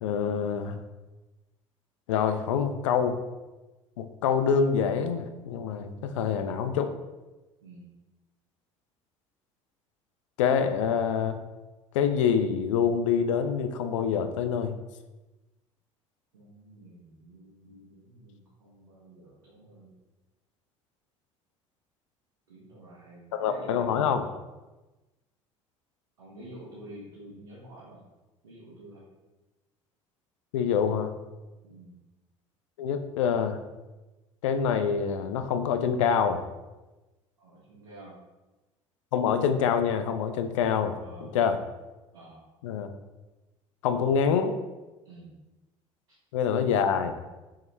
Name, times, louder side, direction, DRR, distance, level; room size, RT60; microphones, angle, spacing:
voice 1, 0.0-0.8 2.1-3.2 4.0-6.9 10.4-11.4 11.9-14.7 23.3-24.4 30.5-31.1 32.8-33.6 34.4-36.4 39.1-41.6 42.6-42.9 43.8-44.6 46.3-47.1, left 7 dB, 70° left, 8 dB, 0.4 m, -26 dB
voice 2, 5.8-6.2 7.6-7.8 16.3-19.9 22.5-23.9 26.2-28.0 28.4-29.0 31.6-31.9 37.4-38.2 41.0-41.3 42.1-42.4 45.0-45.3, right 1 dB, 80° right, -7 dB, 0.9 m, -48 dB
5.7 x 2.1 x 3.2 m, 1.1 s
figure-of-eight pair, 60°, 16 cm